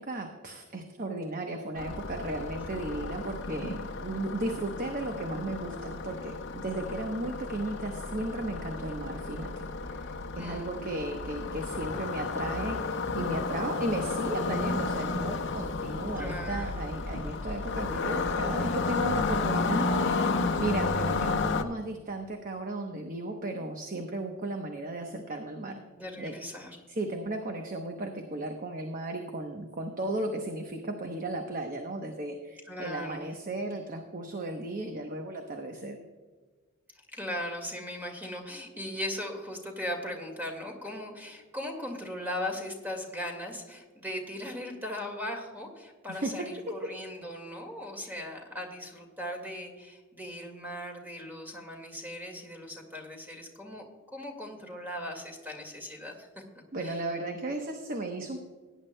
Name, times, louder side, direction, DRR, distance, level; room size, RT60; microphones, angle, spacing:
voice 1, 0.0-25.8 26.2-26.3 26.9-36.0 46.1-46.5 48.0-48.2 56.7-58.4, right 2 dB, 40° right, 4 dB, 0.9 m, -35 dB
sound 1, 1.8-21.6, left 3 dB, 55° left, 0.7 m, -32 dB
voice 2, 10.4-10.9 16.2-16.8 26.0-26.8 32.7-33.3 37.1-56.3 56.8-57.0, left 1 dB, 10° right, 2 dB, 2.0 m, -38 dB
17.5 x 10.0 x 2.2 m, 1.4 s
head